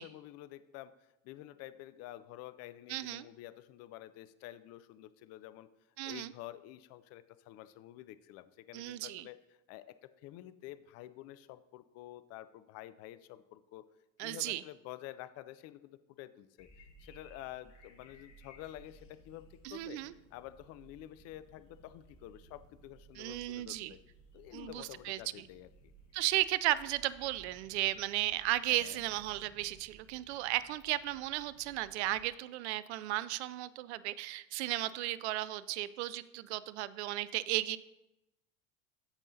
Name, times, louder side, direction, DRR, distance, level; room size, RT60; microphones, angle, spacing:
voice 1, 0.0-5.7 6.0-9.4 9.7-13.8 14.2-16.7 17.0-20.0 20.3-24.0 24.3-25.9 28.7-29.0, left 14 dB, 40° left, 14 dB, 0.5 m, -49 dB
voice 2, 2.9-3.2 6.0-6.3 8.7-9.2 14.2-14.6 19.6-20.1 23.2-23.9 24.5-25.5 26.1-37.8, right 16 dB, 60° right, 17 dB, 0.5 m, -35 dB
sound 1, 16.6-32.3, right 2 dB, 70° left, 1.6 m, -60 dB
15.0 x 5.4 x 2.7 m, 0.95 s
hypercardioid pair, 80°, 39 cm